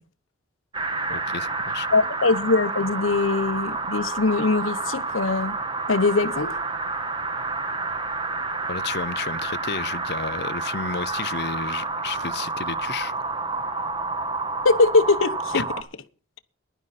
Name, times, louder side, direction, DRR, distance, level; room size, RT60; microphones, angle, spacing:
sound 1, 0.7-15.8, right 3 dB, 25° right, 1.3 m, -29 dB
voice 1, 1.1-1.9 8.7-13.1 15.5-15.6, left 6 dB, 55° left, 0.6 m, -32 dB
voice 2, 1.9-5.5 5.9-6.5 14.6-15.6, left 3 dB, 85° left, 1.0 m, -21 dB
16.0 x 11.0 x 4.2 m
head